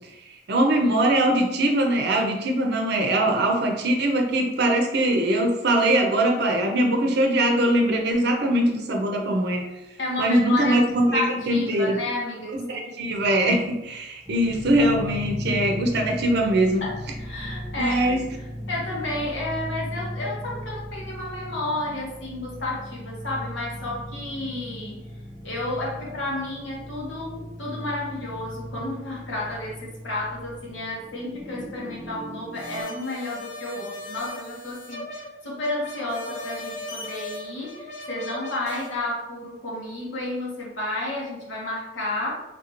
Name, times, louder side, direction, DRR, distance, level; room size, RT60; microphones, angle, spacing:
voice 1, 0.5-9.7 10.2-12.0 12.7-16.8 17.8-18.2, right 1 dB, 65° right, 2 dB, 0.6 m, -22 dB
voice 2, 10.0-10.8 11.1-12.9 16.8-16.9 17.2-25.1 25.4-42.3, left 2 dB, 80° left, -4 dB, 1.2 m, -31 dB
sound 1, 14.3-32.8, equal, ahead, 0.6 m, -37 dB
sound 2, 32.5-38.9, left 2 dB, 40° left, 1.0 m, -37 dB
3.6 x 2.5 x 3.0 m, 0.95 s
head